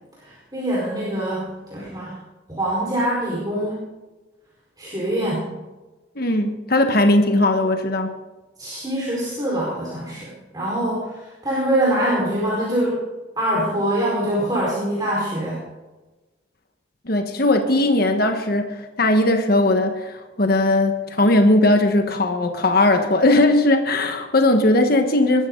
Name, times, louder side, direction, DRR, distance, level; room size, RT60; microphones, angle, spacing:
voice 1, 0.2-2.2 2.5-3.8 4.8-5.5 8.6-13.0 13.4-15.6, right 1 dB, 20° right, -6 dB, 4.7 m, -24 dB
voice 2, 6.1-8.1 17.0-25.5, left 2 dB, 55° left, 6 dB, 1.4 m, -18 dB
21.0 x 13.5 x 3.9 m, 1.2 s
head